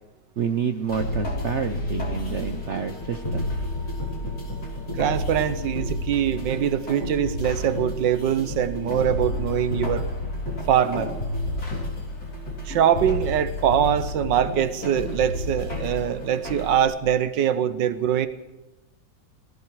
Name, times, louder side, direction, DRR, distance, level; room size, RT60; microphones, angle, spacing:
voice 1, 0.4-3.5, right 7 dB, 55° right, 9 dB, 0.8 m, -28 dB
sound 1, 0.9-16.8, left 1 dB, 55° left, 4.0 m, -30 dB
voice 2, 4.9-10.1 10.7-11.1 12.6-18.3, right 9 dB, 80° right, 13 dB, 1.6 m, -23 dB
17.5 x 16.0 x 4.7 m, 1.1 s
omnidirectional pair, 1.9 m